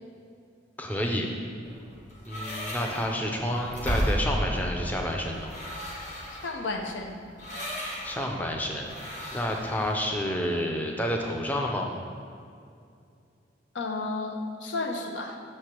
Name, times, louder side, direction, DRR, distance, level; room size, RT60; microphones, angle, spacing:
voice 1, 0.8-1.3 2.3-5.5 8.0-11.9, equal, 10° left, 1 dB, 0.5 m, -29 dB
sound 1, 1.6-9.9, equal, 40° left, 1.2 m, -34 dB
voice 2, 6.3-7.2 13.7-15.4, left 3 dB, 85° left, 3 dB, 0.7 m, -32 dB
6.8 x 3.3 x 5.9 m, 2.4 s
head